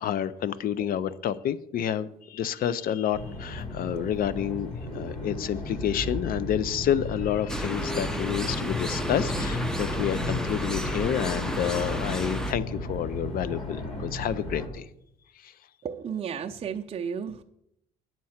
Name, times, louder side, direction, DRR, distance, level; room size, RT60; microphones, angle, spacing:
voice 1, 0.0-14.9 15.4-15.5, left 10 dB, 60° left, 0.6 m, -29 dB
sound 1, 3.1-14.7, left 1 dB, 35° left, 2.7 m, -34 dB
sound 2, 7.5-12.5, equal, 5° left, 0.7 m, -32 dB
voice 2, 15.8-17.4, right 7 dB, 35° right, 0.6 m, -33 dB
9.6 x 7.6 x 5.7 m
cardioid pair, 110°, 17 cm